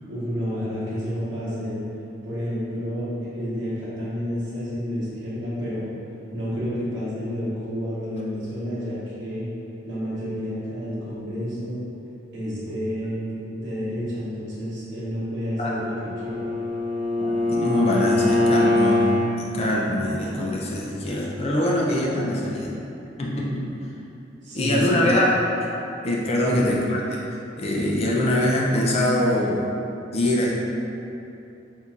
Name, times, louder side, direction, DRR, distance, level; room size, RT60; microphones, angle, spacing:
voice 1, 0.1-1.8 2.2-5.8 6.3-9.5 9.8-11.8 12.3-16.5 24.4-25.2 26.4-26.8, equal, 70° right, -9 dB, 1.1 m, -30 dB
Bowed string instrument, 15.5-19.3, left 2 dB, 40° right, 0.6 m, -23 dB
voice 2, 17.2-19.0 19.3-22.7 23.2-23.7 24.5-25.3 26.0-27.0 27.5-29.6 30.1-30.5, left 1 dB, 35° left, -3 dB, 0.4 m, -23 dB
4.4 x 2.6 x 2.4 m, 2.8 s
head